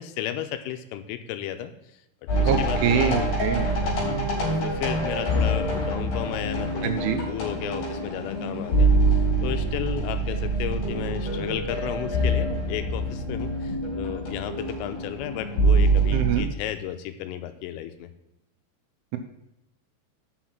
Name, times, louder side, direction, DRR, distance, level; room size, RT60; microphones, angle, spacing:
voice 1, 0.0-2.0 2.4-3.3 3.8-4.1 4.4-18.1, left 11 dB, 85° left, 9 dB, 3.2 m, -34 dB
sound 1, 2.3-16.4, right 2 dB, 40° left, 4.6 m, -25 dB
voice 2, 2.5-3.7 6.8-7.2 16.1-16.5, right 8 dB, 80° right, 5 dB, 3.0 m, -24 dB
7.6 x 6.2 x 5.7 m, 0.86 s
omnidirectional pair, 5.8 m